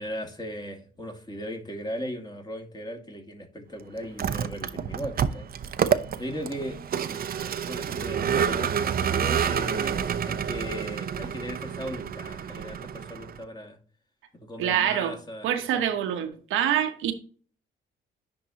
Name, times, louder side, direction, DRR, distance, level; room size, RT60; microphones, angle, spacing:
voice 1, 0.0-5.5 6.2-6.8 7.7-13.8 14.3-16.0, equal, 20° left, 2.2 m, -37 dB
Vehicle, 4.0-13.4, right 8 dB, 50° right, 0.7 m, -28 dB
voice 2, 14.6-15.1 15.4-17.1, right 10 dB, 90° right, 1.0 m, -25 dB
10.5 x 3.8 x 2.9 m
cardioid pair, 90°, 20 cm